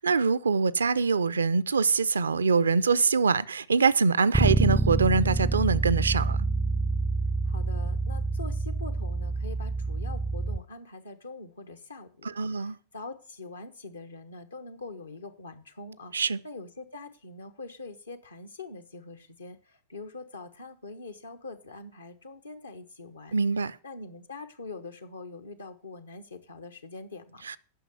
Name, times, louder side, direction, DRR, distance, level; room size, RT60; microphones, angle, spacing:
voice 1, 0.0-6.4 12.4-12.8 16.1-16.4 23.3-23.8 27.5-27.6, right 4 dB, 70° right, 0.4 m, -24 dB
Bass guitar, 4.3-10.6, right 3 dB, 5° right, 0.4 m, -27 dB
voice 2, 7.4-23.4 23.8-27.4, left 3 dB, 75° left, 1.0 m, -44 dB
9.1 x 6.1 x 6.7 m
figure-of-eight pair, 90°, 0 cm